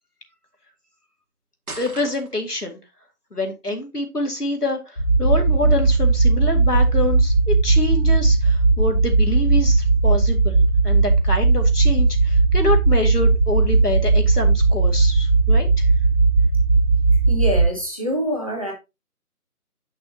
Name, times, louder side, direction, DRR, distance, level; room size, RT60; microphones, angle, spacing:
sound 1, 1.7-2.6, right 2 dB, 65° right, 1.5 m, -37 dB
voice 1, 1.8-2.8 3.3-15.9, left 2 dB, 85° left, 2.2 m, -26 dB
sound 2, 5.0-17.7, right 3 dB, 45° left, 0.6 m, -17 dB
voice 2, 17.3-18.7, equal, 20° right, 1.4 m, -25 dB
7.5 x 6.1 x 2.8 m
figure-of-eight pair, 165°, 45 cm